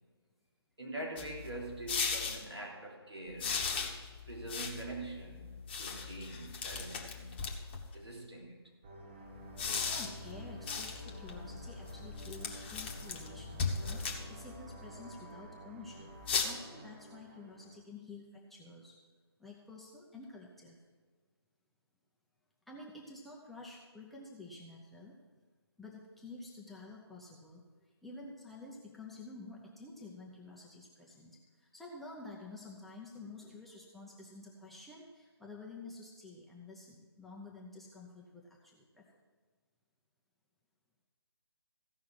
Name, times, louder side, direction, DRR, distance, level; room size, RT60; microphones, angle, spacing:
voice 1, 0.8-3.6 4.3-7.4 7.9-8.6, right 2 dB, 80° right, -1 dB, 3.6 m, -44 dB
sound 1, 1.2-2.4 3.4-7.9 9.4-14.8 16.2-16.4, left 5 dB, 25° left, 1.1 m, -38 dB
sound 2, 8.8-17.8, right 2 dB, 25° right, 1.2 m, -51 dB
voice 2, 9.9-19.0 19.4-20.8 22.7-25.2 25.8-27.6 28.0-39.1, left 3 dB, ahead, -4 dB, 0.7 m, -50 dB
15.5 x 5.6 x 7.4 m, 1.5 s
figure-of-eight pair, 150°, 14 cm